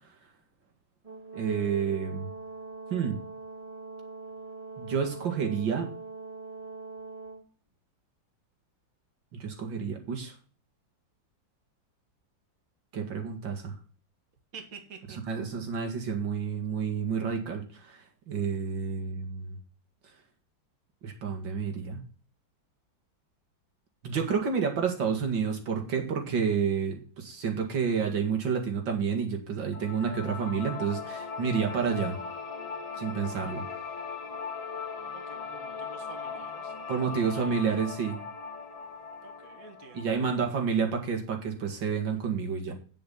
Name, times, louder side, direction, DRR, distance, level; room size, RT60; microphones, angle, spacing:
Brass instrument, 1.0-7.4, right 4 dB, 15° right, 2.7 m, -42 dB
voice 1, 1.3-2.3 2.9-3.2 4.8-5.9 9.4-10.3 12.9-13.8 15.3-18.0 18.3-19.6 21.0-22.0 24.0-32.2 33.0-33.7 36.9-38.2 39.9-42.7, right 6 dB, 75° right, 3 dB, 2.6 m, -29 dB
voice 2, 14.5-15.2 35.1-37.5 39.2-40.5, right 5 dB, 50° right, 4 dB, 2.1 m, -49 dB
sound 1, 29.7-40.8, left 5 dB, 90° left, 2.5 m, -39 dB
9.4 x 7.4 x 5.7 m, 0.40 s
omnidirectional pair, 2.1 m